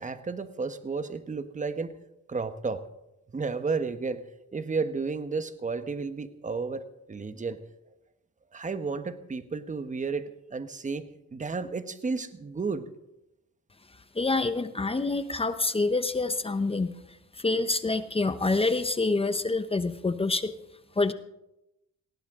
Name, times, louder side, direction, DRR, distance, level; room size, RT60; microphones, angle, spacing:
voice 1, 0.0-1.9 2.3-2.8 3.3-4.2 4.5-7.6 8.5-12.9, right 4 dB, 25° right, 11 dB, 1.2 m, -32 dB
voice 2, 14.1-16.9 17.4-20.5 21.0-21.1, left 3 dB, 20° left, 11 dB, 0.9 m, -26 dB
19.0 x 17.0 x 3.8 m, 0.90 s
cardioid pair, 90°, 30 cm